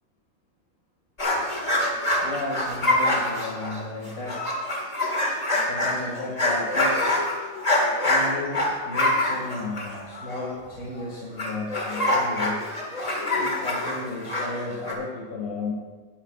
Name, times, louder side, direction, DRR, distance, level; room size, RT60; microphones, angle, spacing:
sound 1, 1.2-11.0 11.4-14.9, left 1 dB, 30° left, 2.0 m, -25 dB
voice 1, 2.2-4.5 4.9-7.2 8.0-12.7 13.4-15.7, left 2 dB, 90° left, -4 dB, 2.5 m, -34 dB
19.5 x 12.0 x 2.4 m, 1.4 s
omnidirectional pair, 1.5 m